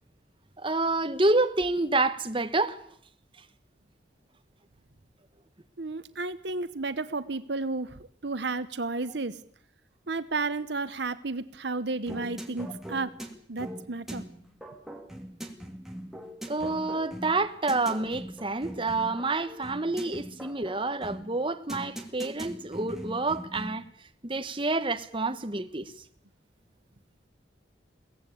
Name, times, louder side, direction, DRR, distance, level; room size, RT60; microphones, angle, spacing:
voice 1, 0.6-2.8 16.5-23.8 24.2-25.9, right 2 dB, 25° right, 1.3 m, -28 dB
voice 2, 5.8-9.4 10.1-13.1 13.5-14.2, right 3 dB, 65° right, 1.0 m, -32 dB
sound 1, 12.1-23.9, equal, ahead, 2.5 m, -41 dB
22.5 x 17.0 x 8.6 m
head